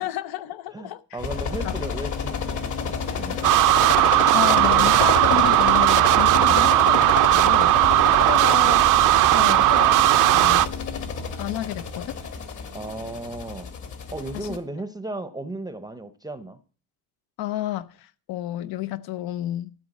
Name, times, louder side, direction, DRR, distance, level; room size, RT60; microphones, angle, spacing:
voice 1, 0.0-1.2 1.6-1.8 4.3-7.0 7.3-7.8 8.2-8.8 9.3-10.7 11.4-12.2 14.3-14.6 17.4-19.7, left 13 dB, 90° left, 0.8 m, -31 dB
voice 2, 0.7-3.4 6.3-6.6 8.2-8.6 9.3-9.7 12.7-13.7 14.1-16.6, right 2 dB, 10° right, 0.6 m, -35 dB
sound 1, 1.2-14.6, left 6 dB, 55° left, 1.7 m, -29 dB
sound 2, 3.4-10.7, right 15 dB, 60° right, 0.5 m, -17 dB
12.5 x 4.5 x 8.3 m
cardioid pair, 145°, 36 cm